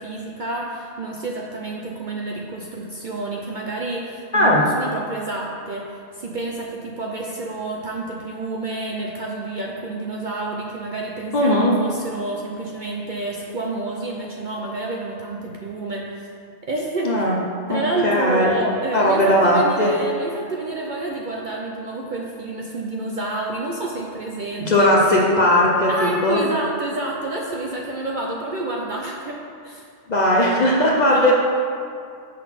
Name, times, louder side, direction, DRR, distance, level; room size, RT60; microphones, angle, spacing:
voice 1, 0.0-16.3 16.6-17.2 17.7-24.9 25.9-29.9 31.0-31.3, right 2 dB, 55° right, -1 dB, 0.6 m, -29 dB
voice 2, 4.3-4.7 11.3-11.7 17.0-17.4 17.7-18.5 18.9-19.9 24.6-26.4 30.1-31.3, left 1 dB, 45° left, -2 dB, 0.7 m, -18 dB
6.3 x 3.9 x 5.8 m, 2.3 s
omnidirectional pair, 1.3 m